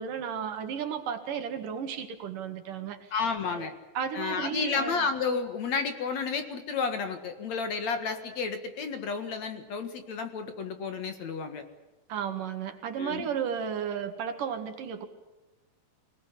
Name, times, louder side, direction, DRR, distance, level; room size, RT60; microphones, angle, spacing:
voice 1, 0.0-3.1 3.5-3.7 3.9-5.0 12.1-15.1, right 7 dB, 65° right, 7 dB, 3.3 m, -34 dB
voice 2, 3.1-3.7 4.1-11.6 13.0-13.3, left 5 dB, 55° left, 8 dB, 2.6 m, -31 dB
25.0 x 19.0 x 9.9 m, 1.1 s
omnidirectional pair, 4.2 m